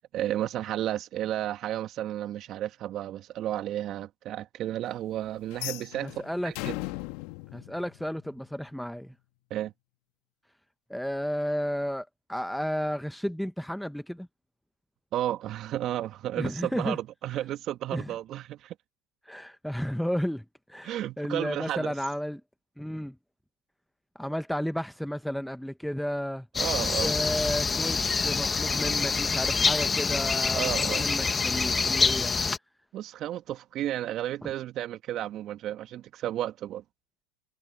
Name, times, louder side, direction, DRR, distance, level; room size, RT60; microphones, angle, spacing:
voice 1, 0.1-6.7 9.5-9.7 15.1-18.7 20.8-21.9 26.6-27.1 30.5-31.1 32.9-36.8, right 12 dB, 40° right, 1.8 m, -32 dB
sound 1, 5.5-8.6, left 23 dB, 55° left, 2.1 m, -38 dB
voice 2, 6.0-6.5 7.5-9.1 10.9-14.3 16.4-17.0 17.9-18.1 19.3-22.4 22.8-23.2 24.1-26.5 27.0-32.3 34.4-34.5, equal, ahead, 0.9 m, -32 dB
sound 2, 26.5-32.6, left 4 dB, 20° left, 1.4 m, -26 dB
hypercardioid pair, 110°, 0 cm